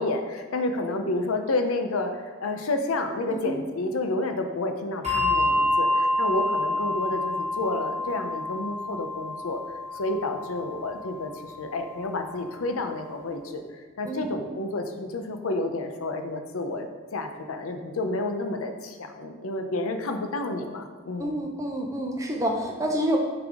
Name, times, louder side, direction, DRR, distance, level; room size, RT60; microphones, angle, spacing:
voice 1, 0.0-9.6 9.9-16.9 17.1-21.4, left 2 dB, 85° left, 6 dB, 0.6 m, -30 dB
Bell, 5.0-11.9, left 1 dB, 30° right, 1.3 m, -28 dB
voice 2, 21.2-23.2, equal, 15° right, 1 dB, 0.6 m, -28 dB
9.4 x 3.5 x 3.6 m, 1.4 s
head